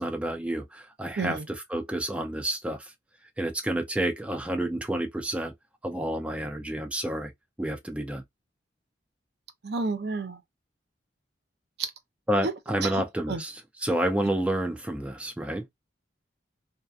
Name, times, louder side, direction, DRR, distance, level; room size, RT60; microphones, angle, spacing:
voice 1, 0.0-2.9 3.4-5.5 5.8-7.3 7.6-8.2 12.3-15.7, right 1 dB, 5° right, 0.5 m, -29 dB
voice 2, 9.6-10.4 11.8-11.9 12.4-12.5 12.8-13.0 13.3-13.4, right 4 dB, 60° right, 0.5 m, -30 dB
2.7 x 2.2 x 2.4 m
head